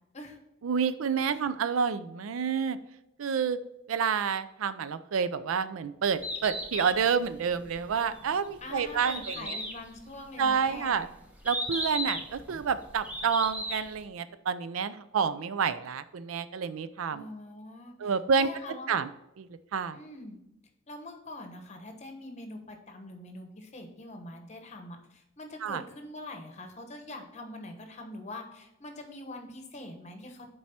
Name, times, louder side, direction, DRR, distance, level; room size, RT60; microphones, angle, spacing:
voice 1, 0.6-2.8 3.2-3.6 3.9-9.6 10.4-11.1 11.4-17.2 18.0-18.5 18.9-19.1 19.4-20.0 25.6-25.8, right 6 dB, 85° right, 14 dB, 0.4 m, -29 dB
Bird, 6.1-14.0, equal, 5° right, 0.9 m, -37 dB
voice 2, 8.6-11.0 17.1-19.0 19.9-20.4 20.9-30.5, left 1 dB, 35° left, 5 dB, 1.0 m, -44 dB
7.3 x 4.7 x 4.2 m, 0.88 s
head